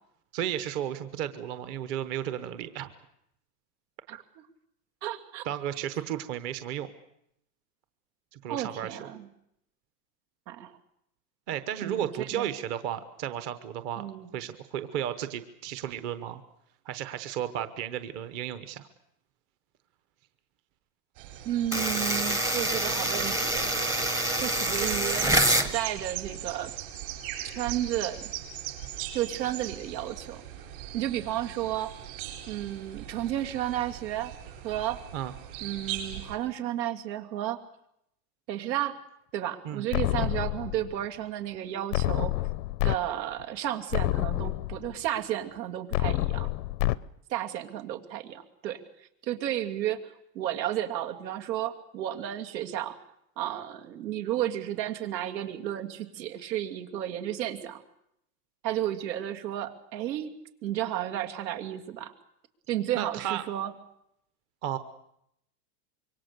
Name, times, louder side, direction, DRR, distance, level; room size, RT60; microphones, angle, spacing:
voice 1, 0.3-2.9 5.4-6.9 8.3-9.1 11.5-14.0 14.3-16.4 16.8-18.9 35.1-35.3 39.6-39.9 40.2-40.3 62.9-63.4 64.6-64.8, right 10 dB, 30° right, 11 dB, 1.0 m, -33 dB
voice 2, 5.0-5.5 8.5-9.3 10.5-10.7 11.8-12.5 14.0-14.3 21.4-24.0 24.4-26.7 27.4-28.3 29.1-30.4 30.9-31.9 32.5-34.3 34.6-35.0 35.6-37.6 38.5-39.0 39.3-42.4 42.8-46.5 47.3-53.0 53.4-57.8 58.6-60.3 60.6-62.1 62.7-63.7, right 12 dB, 85° right, 5 dB, 2.8 m, -32 dB
sound 1, 21.2-36.4, right 12 dB, 55° right, 7.9 m, -40 dB
sound 2, 21.7-25.7, right 1 dB, 5° right, 0.8 m, -26 dB
sound 3, 39.9-40.9 41.9-43.0 43.4-43.5 43.9-44.9 45.9-47.0, left 17 dB, 75° left, 0.9 m, -28 dB
26.0 x 23.5 x 6.8 m, 0.76 s
supercardioid pair, 180°, 50 cm